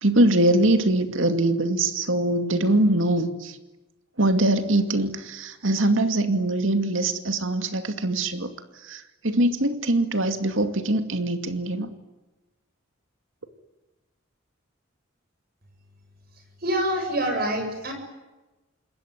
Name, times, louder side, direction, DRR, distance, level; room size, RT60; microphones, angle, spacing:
voice 1, 0.0-3.6 4.2-11.9, right 1 dB, 75° right, 8 dB, 2.4 m, -23 dB
voice 2, 16.6-17.9, right 1 dB, 45° right, 4 dB, 7.1 m, -26 dB
27.0 x 21.5 x 9.7 m, 1.1 s
head